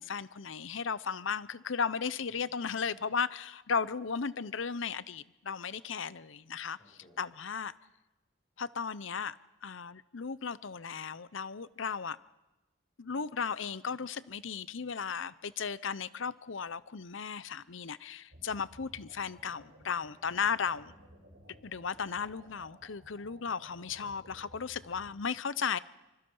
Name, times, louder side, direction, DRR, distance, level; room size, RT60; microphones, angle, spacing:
voice 1, 0.0-6.8 7.2-7.7 8.6-9.3 9.6-12.2 13.0-20.9 21.6-25.8, left 6 dB, 70° left, 0.7 m, -35 dB
voice 2, 2.3-3.0 6.8-7.3 20.7-21.8, equal, 35° left, 7.0 m, -63 dB
sound 1, 18.3-25.1, right 1 dB, 75° right, 5.0 m, -57 dB
25.0 x 25.0 x 5.6 m
head